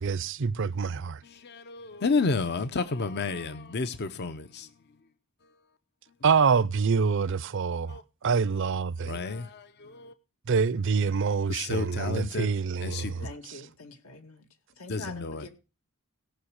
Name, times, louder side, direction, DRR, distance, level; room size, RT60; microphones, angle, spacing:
voice 1, 0.0-1.2 6.2-9.2 10.5-13.3, right 5 dB, 60° right, 0.5 m, -26 dB
voice 2, 1.2-4.7 7.9-8.0 9.0-10.1 11.5-12.5 12.8-13.3 14.9-15.5, left 4 dB, 50° left, 0.7 m, -31 dB
voice 3, 13.2-14.4 14.8-15.5, left 3 dB, 80° left, 2.0 m, -44 dB
17.0 x 6.0 x 6.4 m
head